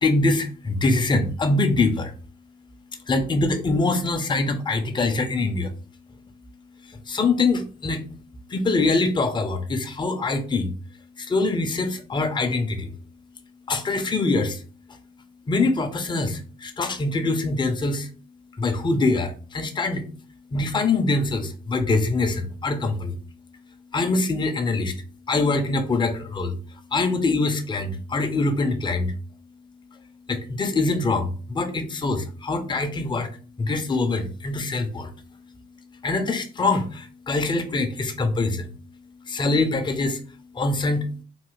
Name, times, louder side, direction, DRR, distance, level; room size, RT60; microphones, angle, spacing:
voice 1, 0.0-2.1 3.1-5.7 7.1-8.0 8.5-10.7 11.2-12.9 13.7-14.6 15.5-18.1 18.6-20.1 20.5-23.2 23.9-25.0 25.3-26.6 26.9-29.1 30.3-33.3 33.6-35.1 36.0-38.7 39.3-40.2 40.5-41.1, left 3 dB, 25° left, 7 dB, 0.5 m, -24 dB
3.2 x 2.2 x 3.0 m, 0.39 s
cardioid pair, 90°, 20 cm